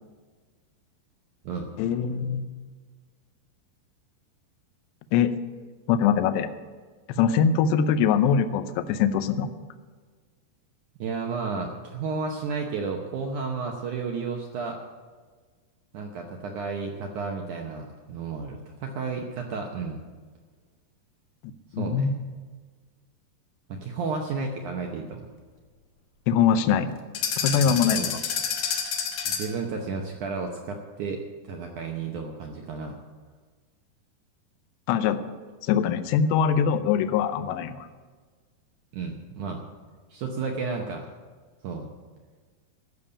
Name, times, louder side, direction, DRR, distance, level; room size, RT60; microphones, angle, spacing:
voice 1, 1.8-2.5 5.1-5.4 5.9-6.5 7.2-9.5 21.7-22.1 26.3-26.9 27.4-28.1 34.9-35.2 35.6-37.9, left 7 dB, 85° left, 11 dB, 2.9 m, -22 dB
voice 2, 11.0-14.8 15.9-20.0 21.8-22.0 23.7-25.3 27.6-28.1 29.3-33.0 38.9-39.6 40.1-41.1 41.6-41.9, right 4 dB, 80° right, 2 dB, 1.7 m, -32 dB
sound 1, 27.1-29.6, left 7 dB, 65° left, 2.5 m, -28 dB
14.5 x 7.1 x 8.5 m, 1.5 s
omnidirectional pair, 4.9 m